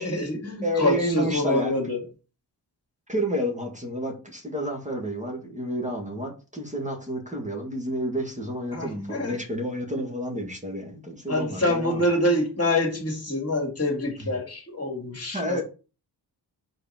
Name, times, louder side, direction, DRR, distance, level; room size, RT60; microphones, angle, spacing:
voice 1, 0.0-2.0 8.7-9.4 11.3-15.6, left 1 dB, 35° left, 2.5 m, -26 dB
voice 2, 0.6-1.8 3.1-12.0 14.2-14.3 15.3-15.6, equal, 15° right, 1.9 m, -30 dB
4.9 x 4.4 x 5.7 m
wide cardioid pair, 90°, 41 cm